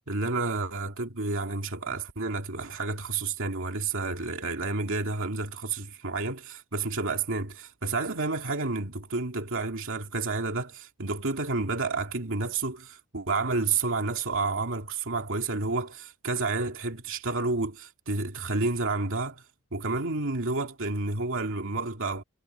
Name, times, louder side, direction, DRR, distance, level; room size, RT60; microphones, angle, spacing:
voice 1, 0.1-19.4 19.7-22.2, right 3 dB, 65° right, 2.4 m, -30 dB
head